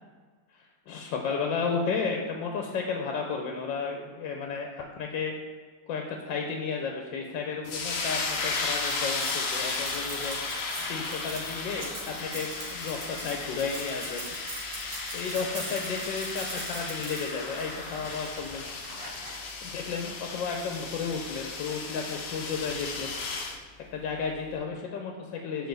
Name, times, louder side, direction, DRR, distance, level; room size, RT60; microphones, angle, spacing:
voice 1, 0.9-5.3 5.9-10.4 10.9-14.2 15.1-18.7 19.6-23.2 23.9-25.7, left 5 dB, 85° left, 2 dB, 1.4 m, -33 dB
sound 1, 7.6-23.6, left 4 dB, 60° left, 0.6 m, -35 dB
sound 2, 7.8-19.5, right 2 dB, 55° right, 1.7 m, -42 dB
6.7 x 4.6 x 4.0 m, 1.5 s
omnidirectional pair, 2.0 m